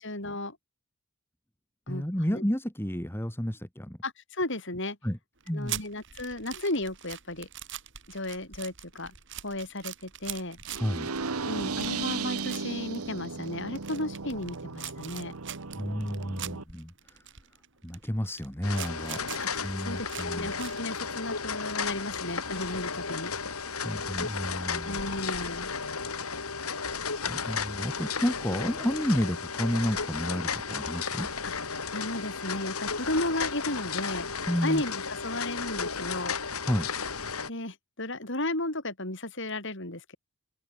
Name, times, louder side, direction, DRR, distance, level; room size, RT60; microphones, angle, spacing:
voice 1, 0.0-0.6 1.9-2.4 4.0-5.0 5.5-7.5 8.1-9.1 9.4-10.6 11.4-15.4 19.4-23.3 24.7-25.7 31.4-34.3 34.6-36.4 37.5-40.2, left 1 dB, 55° left, 7.5 m, -34 dB
voice 2, 1.9-4.0 5.0-5.2 5.5-5.8 10.7-11.1 15.7-17.2 17.8-19.2 19.6-20.5 23.8-25.0 27.3-31.3 34.5-34.8 36.6-36.9, equal, 10° left, 1.6 m, -31 dB
sound 1, 5.4-20.8, right 11 dB, 55° right, 4.5 m, -43 dB
sound 2, 10.7-16.6, right 4 dB, 85° right, 1.4 m, -35 dB
sound 3, 18.6-37.5, left 5 dB, 85° left, 4.5 m, -34 dB
open air
head